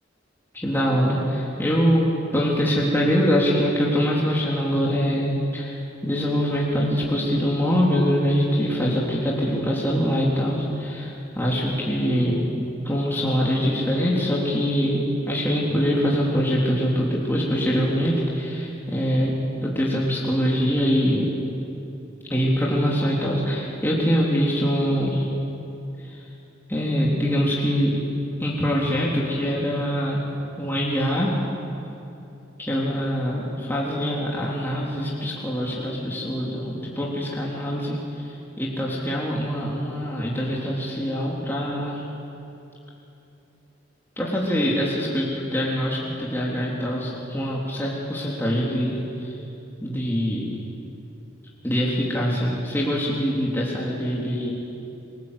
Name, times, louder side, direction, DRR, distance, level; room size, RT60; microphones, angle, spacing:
voice 1, 0.5-12.4 12.8-21.3 22.3-25.3 26.0-26.2 26.7-28.0 28.4-30.2 30.6-31.3 32.6-42.0 44.2-49.4 49.8-50.5 51.6-54.5, equal, 10° left, -5 dB, 3.4 m, -24 dB
30.0 x 22.5 x 8.3 m, 2.9 s
head